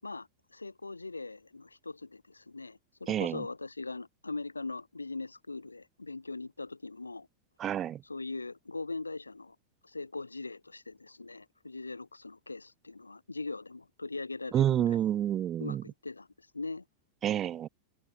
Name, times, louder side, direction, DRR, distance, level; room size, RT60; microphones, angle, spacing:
voice 1, 0.0-7.3 8.0-9.6 9.8-15.0 15.6-16.8, left 3 dB, 80° left, 6.2 m, -41 dB
voice 2, 3.1-3.4 7.6-8.0 14.5-15.8 17.2-17.7, right 11 dB, 30° right, 0.7 m, -28 dB
open air
figure-of-eight pair, 90°, 0 cm